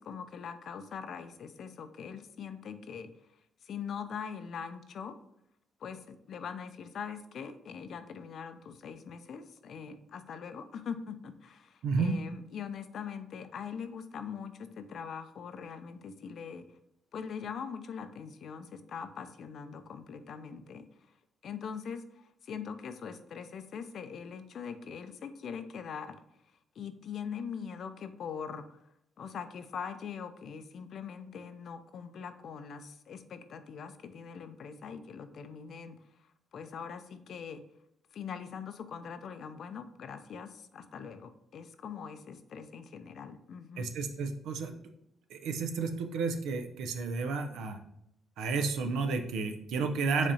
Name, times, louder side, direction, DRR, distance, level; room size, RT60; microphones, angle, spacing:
voice 1, 0.0-3.1 3.6-5.2 5.8-16.7 17.1-20.9 21.4-26.2 26.8-28.8 29.2-36.0 36.5-37.6 38.1-43.9, left 6 dB, 65° left, 10 dB, 0.4 m, -42 dB
voice 2, 11.8-12.2 43.8-44.7 45.3-47.8 48.4-50.3, right 4 dB, 80° right, 6 dB, 0.5 m, -31 dB
5.1 x 3.6 x 2.7 m, 0.77 s
supercardioid pair, 65°, 0 cm